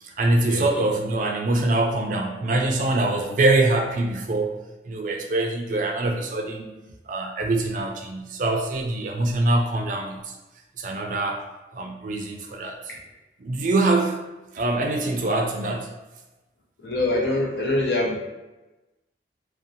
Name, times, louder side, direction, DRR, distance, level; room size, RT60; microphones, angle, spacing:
voice 1, 0.0-4.5 4.8-6.7 7.1-10.3 10.8-11.4 11.7-12.9 13.4-14.2 14.5-15.9, right 2 dB, 45° right, 2 dB, 0.3 m, -24 dB
voice 2, 16.8-18.2, left 2 dB, 70° left, -1 dB, 0.6 m, -24 dB
2.6 x 2.1 x 2.6 m, 1.1 s
head